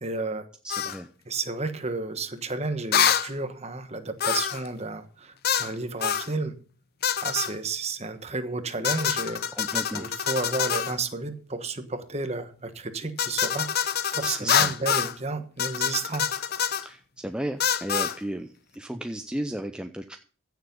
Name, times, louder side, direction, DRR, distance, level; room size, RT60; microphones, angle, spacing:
voice 1, 0.0-0.4 1.3-6.5 7.2-9.4 9.9-16.3, right 3 dB, 30° right, 9 dB, 1.2 m, -32 dB
voice 2, 0.6-1.1 9.5-10.1 14.2-14.7 16.8-20.2, right 1 dB, 5° right, 6 dB, 0.5 m, -34 dB
sound 1, 0.7-1.0 2.9-3.3 4.2-4.7 5.4-5.7 6.0-6.3 7.0-7.5 8.8-11.0 13.2-15.1 15.6-16.8 17.6-18.2, left 8 dB, 45° left, 0.7 m, -26 dB
15.5 x 7.0 x 5.3 m, 0.41 s
head